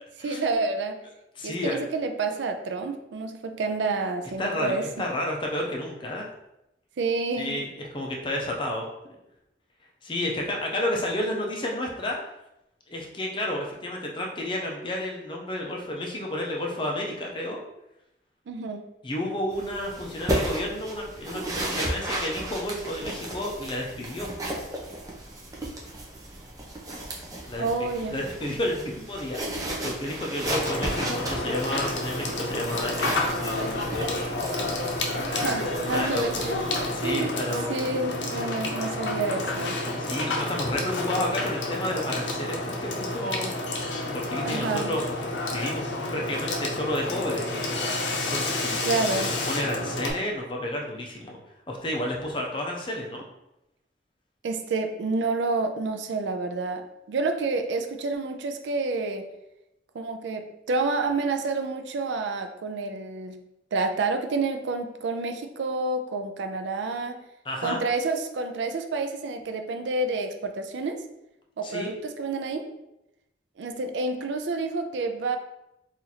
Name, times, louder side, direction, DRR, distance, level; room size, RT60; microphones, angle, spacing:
voice 1, 0.2-1.0 1.4-5.1 7.0-7.6 18.5-18.8 27.6-28.2 35.3-37.4 37.7-39.8 44.4-44.9 48.8-49.3 54.4-59.3 59.9-63.4 63.7-67.2 67.6-71.0 71.6-72.7 73.6-75.4, right 3 dB, 85° right, 6 dB, 0.4 m, -29 dB
voice 2, 1.4-1.8 4.4-6.3 7.4-9.2 10.0-12.2 12.9-17.6 19.0-24.3 27.5-27.7 28.1-33.3 35.9-36.5 36.9-37.6 40.0-43.8 44.1-45.0 45.5-47.4 48.1-48.8 49.5-51.4 51.7-53.2 67.4-67.8 71.6-71.9, left 1 dB, 30° left, 0 dB, 0.5 m, -31 dB
sound 1, 19.5-37.1, right 1 dB, 20° right, 0.5 m, -35 dB
Water / Water tap faucet / Sink (filling or washing), 30.4-50.1, left 2 dB, 85° left, 0.6 m, -30 dB
2.9 x 2.5 x 4.0 m, 0.88 s
head